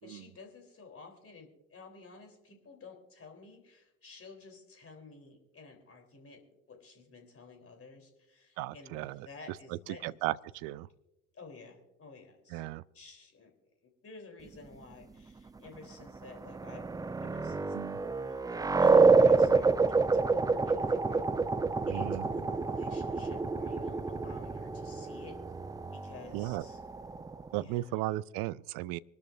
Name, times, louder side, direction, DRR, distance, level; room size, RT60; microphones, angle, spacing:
voice 1, 0.0-10.2 11.3-13.5 13.8-16.8 17.2-19.7 20.1-21.3 21.8-25.4 25.9-26.8 27.5-28.1, left 4 dB, 35° left, 3.7 m, -52 dB
voice 2, 8.6-9.3 10.0-10.9 12.5-12.8 17.7-18.0 21.9-22.3 26.3-26.6 27.5-29.0, right 16 dB, 55° right, 0.6 m, -35 dB
sound 1, 16.1-27.6, right 4 dB, 10° right, 0.4 m, -28 dB
25.0 x 12.5 x 2.6 m
figure-of-eight pair, 55°, 40 cm